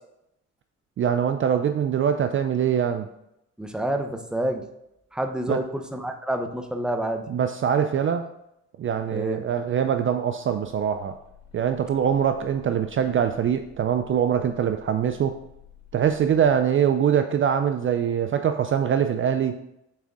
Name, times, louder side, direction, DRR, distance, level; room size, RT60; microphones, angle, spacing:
voice 1, 1.0-3.1 5.5-5.6 7.3-8.2 8.8-11.1 11.5-15.4 15.9-19.6, right 8 dB, 45° right, 8 dB, 0.4 m, -23 dB
voice 2, 3.6-4.6 5.1-7.2 9.1-9.4, right 1 dB, 5° right, 5 dB, 0.7 m, -28 dB
sound 1, 10.6-16.6, left 9 dB, 55° left, 2.3 m, -52 dB
7.4 x 3.7 x 3.6 m, 0.82 s
cardioid pair, 90°, 30 cm